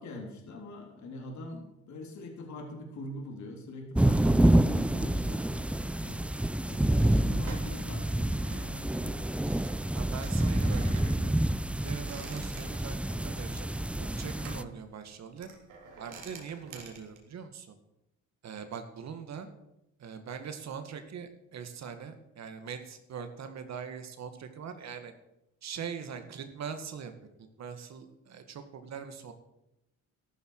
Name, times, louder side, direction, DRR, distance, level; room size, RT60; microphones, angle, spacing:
voice 1, 0.0-6.2 6.7-9.5 14.4-14.7, left 1 dB, 70° left, 2 dB, 3.4 m, -43 dB
sound 1, 3.9-14.6, right 1 dB, 5° right, 0.5 m, -28 dB
sound 2, 5.9-17.2, right 4 dB, 85° right, 3.5 m, -50 dB
voice 2, 9.9-10.8 11.2-11.4 11.8-13.7 14.0-15.5 16.0-17.7 18.4-19.5 20.0-25.1 25.6-27.1 27.4-29.3, right 7 dB, 65° right, 8 dB, 1.9 m, -42 dB
14.0 x 12.5 x 4.8 m, 0.88 s
cardioid pair, 90°, 30 cm